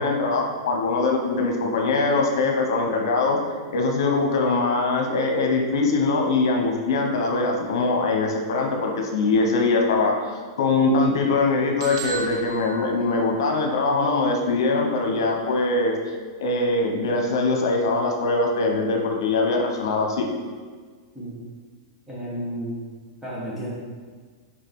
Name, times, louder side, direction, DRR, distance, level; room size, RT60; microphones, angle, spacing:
voice 1, 0.0-3.4 3.7-10.3 10.6-16.0 16.4-20.3, left 3 dB, 75° left, 2 dB, 1.0 m, -22 dB
sound 1, 11.8-13.7, right 4 dB, 65° right, 1.3 m, -35 dB
voice 2, 22.1-22.8 23.2-23.7, equal, 5° right, -7 dB, 1.7 m, -32 dB
6.6 x 4.9 x 3.7 m, 1.5 s
supercardioid pair, 155°, 2 cm